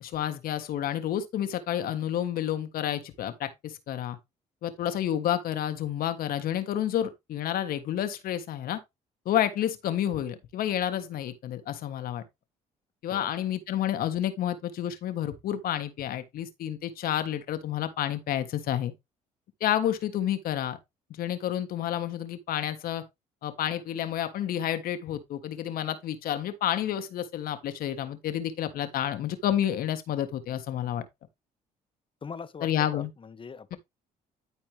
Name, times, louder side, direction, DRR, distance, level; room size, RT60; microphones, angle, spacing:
voice 1, 0.0-4.2 4.6-8.8 9.2-12.2 13.0-18.9 19.6-20.8 21.2-23.0 23.4-31.0 32.6-33.1 33.7-33.8, left 11 dB, 70° left, 1.5 m, -30 dB
voice 2, 32.2-33.8, left 5 dB, 35° left, 1.1 m, -42 dB
12.5 x 4.5 x 3.3 m
supercardioid pair, 80°, 16 cm